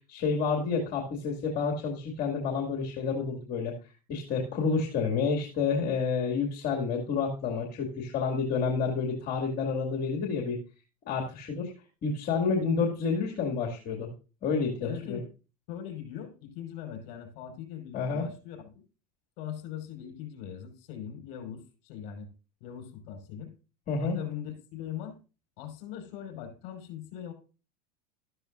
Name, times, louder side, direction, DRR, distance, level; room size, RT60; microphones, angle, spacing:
voice 1, 0.0-3.7 4.1-10.6 11.1-11.7 12.0-14.1 14.4-15.2 17.9-18.2 23.9-24.2, left 5 dB, 45° left, 0 dB, 2.4 m, -29 dB
voice 2, 14.8-15.2 15.7-18.8 19.4-22.3 22.6-23.5 24.0-25.2 25.6-27.3, left 9 dB, 65° left, 4 dB, 5.3 m, -40 dB
13.0 x 12.5 x 2.6 m, 0.33 s
supercardioid pair, 105°, 21 cm